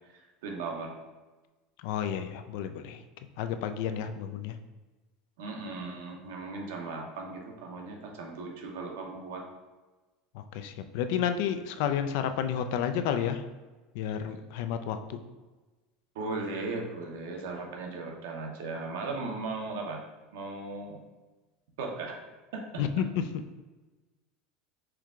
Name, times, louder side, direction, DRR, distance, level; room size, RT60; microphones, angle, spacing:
voice 1, 0.1-0.9 5.4-9.4 16.1-20.0 20.3-21.0 21.8-22.2 22.5-22.6, right 3 dB, 85° right, 1 dB, 0.8 m, -37 dB
voice 2, 1.8-3.0 3.4-4.6 10.3-13.4 13.9-15.2 22.8-23.2, left 8 dB, 70° left, 9 dB, 0.3 m, -31 dB
4.5 x 2.3 x 3.6 m, 1.2 s
supercardioid pair, 135°, 0 cm